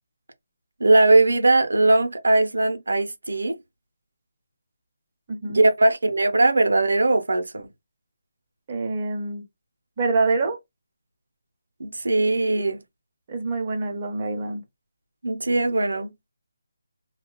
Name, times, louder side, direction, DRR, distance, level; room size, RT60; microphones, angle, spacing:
voice 1, 0.8-3.6 5.4-7.7 11.8-12.8 15.2-16.1, right 2 dB, 85° right, 0.6 m, -20 dB
voice 2, 5.3-5.6 8.7-9.4 10.0-10.6 13.3-14.6, right 3 dB, 30° right, 0.8 m, -26 dB
2.9 x 2.3 x 2.2 m
figure-of-eight pair, 165°, 0 cm